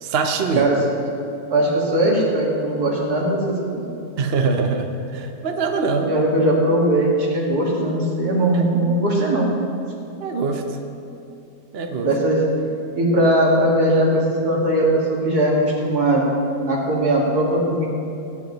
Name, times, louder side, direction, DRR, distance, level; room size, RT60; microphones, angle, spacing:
voice 1, 0.0-0.7 4.2-6.2 8.5-8.6 10.2-10.6 11.7-12.1, right 4 dB, 50° right, 4 dB, 0.8 m, -23 dB
voice 2, 1.5-3.9 6.0-9.5 12.0-12.4 12.9-16.3 16.7-17.9, right 1 dB, 70° right, -3 dB, 2.5 m, -19 dB
18.5 x 9.9 x 3.0 m, 2.7 s
omnidirectional pair, 1.7 m